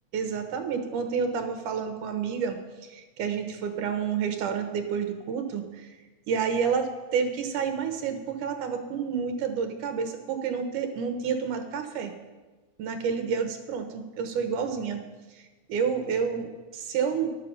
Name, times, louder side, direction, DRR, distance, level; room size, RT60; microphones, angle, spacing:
voice 1, 0.1-5.9 6.3-12.1 12.8-15.0 15.3-17.3, right 6 dB, 80° right, 7 dB, 2.6 m, -29 dB
11.5 x 7.5 x 6.9 m, 1.2 s
omnidirectional pair, 3.7 m